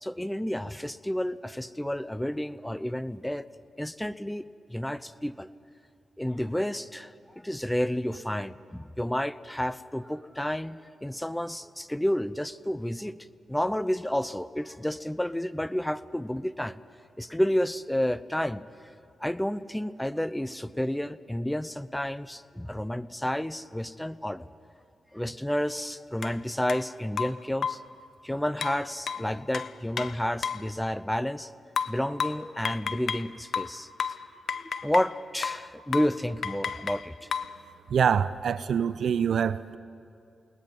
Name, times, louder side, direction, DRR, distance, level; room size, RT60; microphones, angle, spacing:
voice 1, 0.0-3.4 3.8-4.4 4.7-5.5 6.2-13.2 13.5-16.8 17.2-18.6 19.2-24.5 25.1-27.8 28.2-31.5 31.9-33.9 34.8-37.3, left 1 dB, 10° left, 16 dB, 0.7 m, -30 dB
sound 1, 26.2-26.4 26.7-26.8 27.2-27.9 28.6-30.7 31.8-33.3 33.5-35.2 35.4-35.7 35.9-36.2 36.4-37.6, left 6 dB, 70° left, 0.6 m, -32 dB
voice 2, 37.9-39.8, right 7 dB, 75° right, 16 dB, 0.5 m, -25 dB
29.0 x 19.5 x 5.5 m, 2.5 s
supercardioid pair, 45°, 0 cm